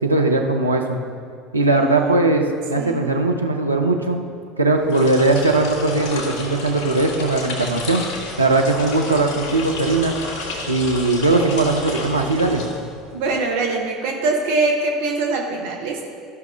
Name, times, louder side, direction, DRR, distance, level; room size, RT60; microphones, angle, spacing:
voice 1, 0.0-1.0 1.5-4.2 4.6-8.0 8.4-10.1 10.7-12.6, right 2 dB, 90° right, 2 dB, 0.6 m, -19 dB
voice 2, 1.7-3.1 13.1-16.0, right 3 dB, 60° right, 0 dB, 1.1 m, -23 dB
sound 1, 4.8-13.2, left 2 dB, 50° left, 1.8 m, -31 dB
13.5 x 5.9 x 3.5 m, 2.3 s
figure-of-eight pair, 70°, 0 cm